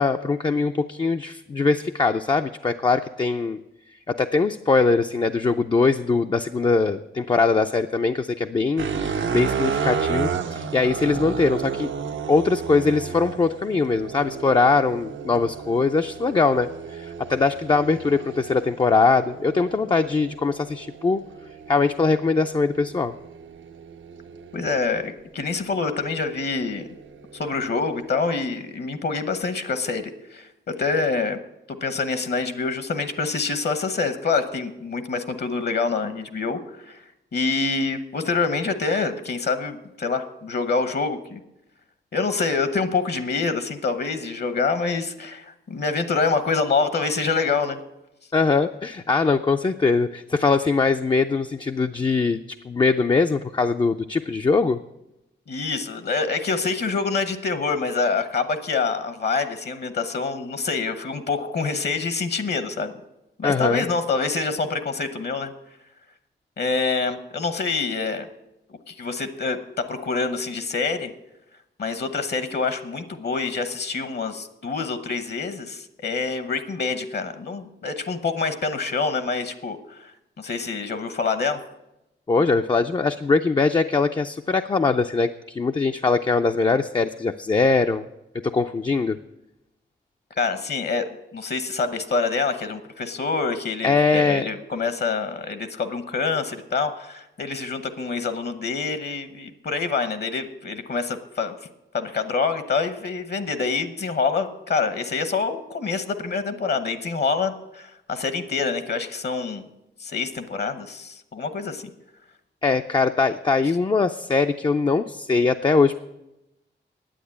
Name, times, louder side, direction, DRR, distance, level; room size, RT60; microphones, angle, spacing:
voice 1, 0.0-3.6 4.1-11.9 12.3-21.2 21.7-23.1 48.3-52.4 52.7-54.8 63.4-63.8 82.3-88.0 88.3-89.2 93.8-94.5 112.6-116.0, left 4 dB, 25° left, 6 dB, 0.4 m, -21 dB
sound 1, 8.8-25.1 25.7-28.2, right 6 dB, 80° right, 0.8 m, -33 dB
voice 2, 24.5-26.9 27.3-31.4 31.8-37.0 37.3-41.4 42.1-47.8 55.5-62.9 63.4-65.5 66.6-68.3 68.9-69.6 69.9-71.1 71.8-80.1 80.4-81.6 90.4-101.5 101.9-109.7 110.0-111.9, left 4 dB, 55° left, 10 dB, 0.9 m, -26 dB
10.0 x 8.6 x 8.4 m, 0.93 s
wide cardioid pair, 135°, 20 cm